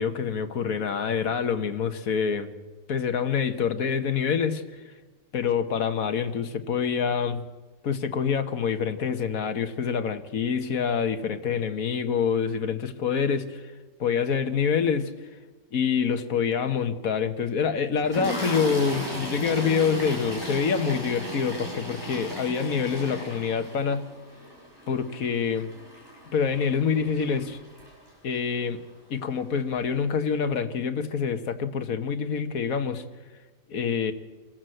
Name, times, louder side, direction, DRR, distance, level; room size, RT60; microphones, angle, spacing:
voice 1, 0.0-2.5 2.9-4.6 5.3-7.4 7.8-13.6 14.0-15.1 15.7-24.0 24.9-25.7 26.3-27.6 28.2-28.8 29.1-33.0 33.7-34.1, left 6 dB, 85° left, 8 dB, 1.7 m, -26 dB
Toilet flush, 18.0-28.3 29.3-29.4 29.7-29.9, equal, 15° right, 7.9 m, -36 dB
26.0 x 14.0 x 7.8 m, 1.3 s
omnidirectional pair, 1.4 m